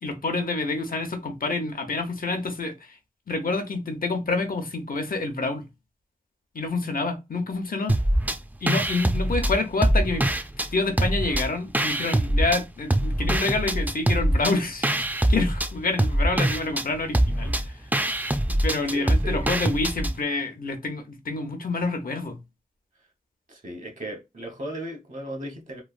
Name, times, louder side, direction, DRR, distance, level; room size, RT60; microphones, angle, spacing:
voice 1, 0.0-3.0 3.3-5.6 6.5-8.0 8.6-10.3 10.7-14.9 15.3-17.7 18.6-22.4, left 3 dB, 80° left, 0.7 m, -27 dB
sound 1, 7.9-8.4 8.7-10.7 11.0-12.6 12.9-20.2, right 1 dB, 10° right, 0.3 m, -23 dB
voice 2, 18.9-19.5 23.5-25.8, right 1 dB, 60° right, 1.1 m, -36 dB
3.1 x 2.2 x 2.4 m
wide cardioid pair, 60°, 15 cm